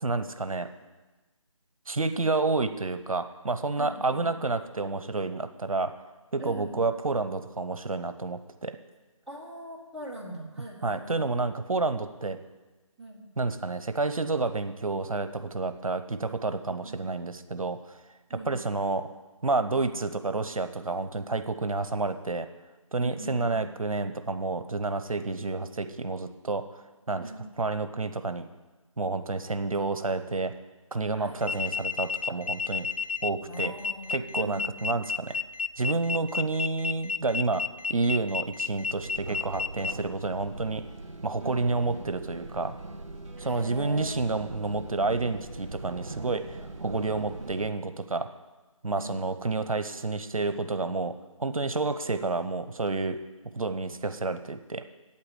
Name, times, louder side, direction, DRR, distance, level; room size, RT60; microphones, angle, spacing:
voice 1, 0.0-0.7 1.9-5.9 6.3-8.8 10.8-12.4 13.4-18.0 18.3-19.1 19.4-22.5 22.9-26.6 27.1-28.4 29.0-30.5 30.9-32.9 33.2-33.7 34.1-35.4 35.8-37.6 37.9-40.8 41.2-42.7 43.4-48.3 48.8-51.1 51.4-53.2 53.5-54.8, right 3 dB, 80° right, 10 dB, 0.9 m, -29 dB
voice 2, 3.8-4.3 6.4-6.8 9.3-11.2 13.0-13.3 16.7-17.0 18.3-18.6 23.0-23.7 27.2-27.4 31.1-31.8 33.5-34.9 41.4-41.6 43.4-44.2 48.9-49.2, right 1 dB, ahead, -9 dB, 1.3 m, -42 dB
sound 1, 31.4-39.9, left 6 dB, 85° left, 0.5 m, -31 dB
sound 2, 39.0-47.7, right 2 dB, 60° right, 1.8 m, -41 dB
9.0 x 8.7 x 8.0 m, 1.2 s
figure-of-eight pair, 160°, 18 cm